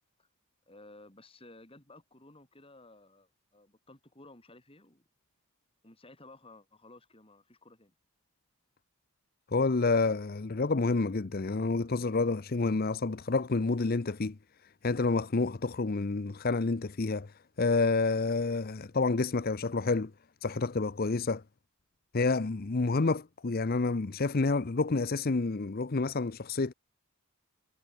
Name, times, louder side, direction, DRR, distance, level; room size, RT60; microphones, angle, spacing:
voice 1, 0.7-5.0 5.8-7.9, left 2 dB, 25° left, 3.3 m, -55 dB
voice 2, 9.5-14.4 14.8-20.1 20.4-21.4 22.1-26.7, left 3 dB, 40° left, 0.6 m, -29 dB
head